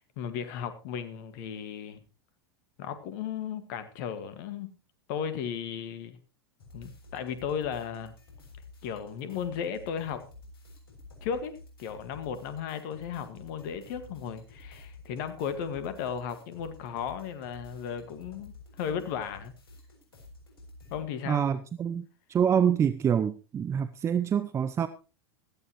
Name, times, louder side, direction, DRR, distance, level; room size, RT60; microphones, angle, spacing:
voice 1, 0.0-2.0 2.8-4.7 5.1-6.2 6.7-8.1 8.8-10.2 11.2-19.5 20.9-21.4, left 7 dB, 50° left, 1.8 m, -35 dB
sound 1, 6.6-21.0, left 2 dB, 70° left, 7.0 m, -51 dB
voice 2, 21.3-24.9, right 8 dB, 20° right, 0.7 m, -26 dB
17.5 x 14.0 x 3.0 m
figure-of-eight pair, 90°, 13 cm